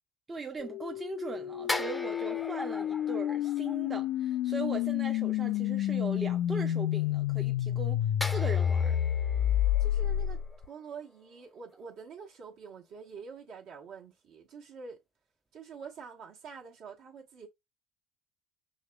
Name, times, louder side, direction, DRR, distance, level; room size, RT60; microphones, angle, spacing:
voice 1, 0.3-9.0, right 4 dB, 25° right, 0.7 m, -40 dB
sound 1, 0.6-10.6, left 11 dB, 60° left, 0.4 m, -30 dB
sound 2, 1.7-4.4 8.2-11.4 11.7-11.9, left 2 dB, 15° left, 0.6 m, -40 dB
voice 2, 9.8-10.4 10.6-15.0 15.5-17.5, right 6 dB, 60° right, 1.2 m, -46 dB
6.3 x 2.9 x 2.2 m
hypercardioid pair, 60°, 0 cm